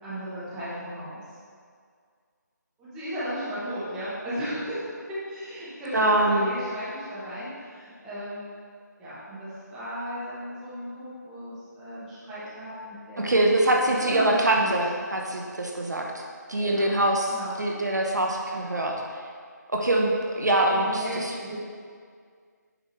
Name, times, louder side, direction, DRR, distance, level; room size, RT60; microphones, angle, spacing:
voice 1, 0.0-1.4 2.8-8.4 9.0-14.8 16.6-17.0 17.3-17.5 20.3-21.7, equal, 5° right, -13 dB, 1.4 m, -35 dB
voice 2, 5.9-6.5 13.2-16.1 16.5-18.9 19.7-21.3, right 1 dB, 65° right, 0 dB, 1.1 m, -24 dB
8.9 x 6.3 x 3.3 m, 2.1 s
figure-of-eight pair, 160°, 10 cm